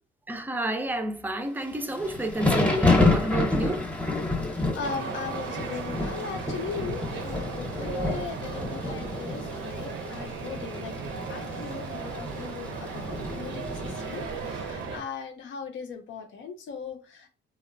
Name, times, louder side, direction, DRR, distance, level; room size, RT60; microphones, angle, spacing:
voice 1, 0.3-3.9, right 1 dB, 10° right, 0.4 m, -30 dB
Thunder / Rain, 1.7-14.7, left 2 dB, 5° left, 0.8 m, -29 dB
voice 2, 4.2-10.9 11.3-17.3, left 6 dB, 70° left, 0.6 m, -38 dB
sound 1, 4.8-15.0, right 4 dB, 75° right, 0.6 m, -36 dB
2.9 x 2.1 x 2.5 m
cardioid pair, 90°, 20 cm